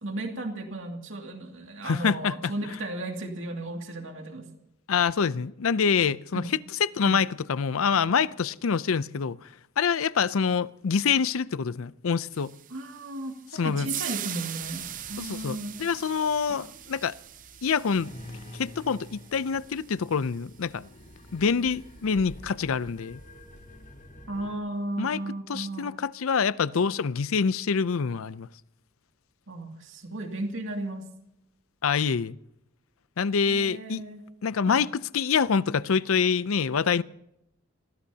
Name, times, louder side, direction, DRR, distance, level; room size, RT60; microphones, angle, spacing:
voice 1, 0.0-4.5 6.3-6.5 7.1-7.2 12.7-15.8 24.3-25.9 29.5-31.0 33.5-34.2 34.7-34.8, right 1 dB, 65° right, 2.4 m, -35 dB
voice 2, 1.8-2.5 4.9-6.4 6.8-9.4 9.8-12.5 13.5-13.9 15.2-17.1 17.6-18.1 18.5-20.9 21.3-23.2 25.0-25.2 25.5-28.5 31.8-32.4 33.2-34.0 34.4-37.0, left 6 dB, 80° left, 0.5 m, -26 dB
sound 1, 12.3-20.6, right 12 dB, 40° right, 0.5 m, -41 dB
sound 2, 14.6-24.6, left 1 dB, 40° left, 3.4 m, -49 dB
26.5 x 19.0 x 2.8 m
head